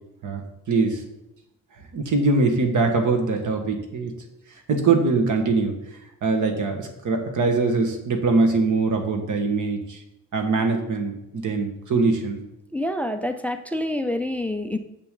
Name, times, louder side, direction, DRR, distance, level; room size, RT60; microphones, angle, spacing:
voice 1, 0.7-1.0 1.9-4.1 4.7-5.7 6.2-10.0 10.3-12.4, right 3 dB, 50° right, 5 dB, 1.4 m, -22 dB
voice 2, 12.7-14.8, left 1 dB, 5° left, 8 dB, 0.3 m, -27 dB
7.9 x 7.1 x 3.7 m, 0.89 s
cardioid pair, 155°, 39 cm